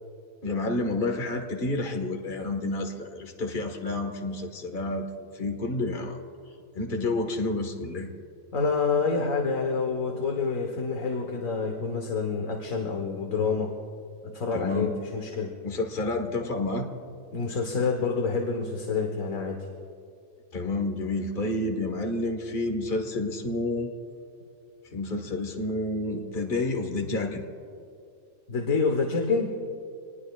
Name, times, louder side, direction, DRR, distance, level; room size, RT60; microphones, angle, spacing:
voice 1, 0.4-5.1 5.3-6.2 6.7-8.1 14.5-14.9 15.6-16.9 20.5-23.9 24.8-27.4, left 2 dB, 40° left, 4 dB, 1.6 m, -29 dB
voice 2, 8.5-13.7 14.2-15.5 17.3-19.7 28.5-29.5, left 4 dB, 70° left, 2 dB, 1.7 m, -27 dB
26.5 x 20.5 x 2.4 m, 2.4 s
omnidirectional pair, 1.4 m